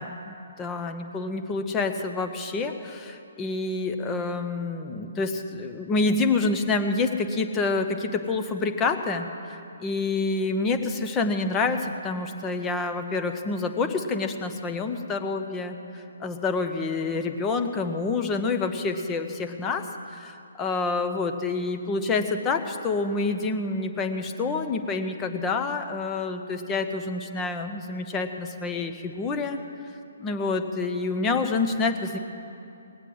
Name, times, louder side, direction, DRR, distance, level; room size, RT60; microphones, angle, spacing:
voice 1, 0.0-15.8 16.2-29.6 30.2-32.2, left 3 dB, 20° left, 6 dB, 1.0 m, -27 dB
18.5 x 8.1 x 7.8 m, 2.6 s
figure-of-eight pair, 135°, 0 cm